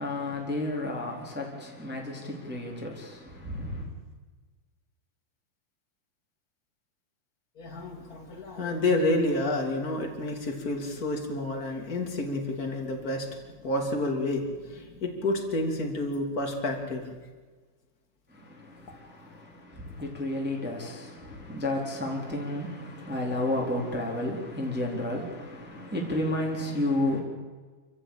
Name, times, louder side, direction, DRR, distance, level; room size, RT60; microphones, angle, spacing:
voice 1, 0.0-3.9 18.3-27.2, left 1 dB, ahead, -1 dB, 3.4 m, -32 dB
voice 2, 7.6-17.2, left 2 dB, 25° left, 3 dB, 2.4 m, -29 dB
27.5 x 15.0 x 8.9 m, 1.4 s
omnidirectional pair, 5.7 m